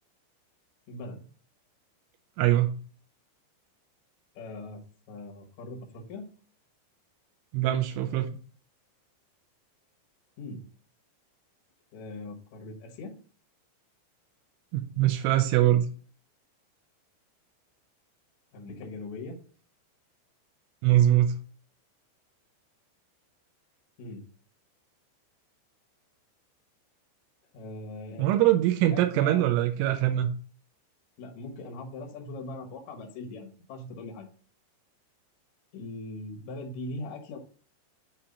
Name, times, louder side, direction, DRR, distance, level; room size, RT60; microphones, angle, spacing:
voice 1, 0.9-1.3 4.3-6.3 10.4-10.7 11.9-13.1 18.5-19.4 24.0-24.2 27.5-28.3 28.8-29.5 31.2-34.3 35.7-37.4, left 2 dB, 80° left, 0 dB, 1.6 m, -40 dB
voice 2, 2.4-2.8 7.5-8.3 14.7-15.9 20.8-21.4 28.2-30.3, right 13 dB, 85° right, 6 dB, 3.0 m, -23 dB
7.5 x 2.9 x 5.1 m, 0.40 s
omnidirectional pair, 5.5 m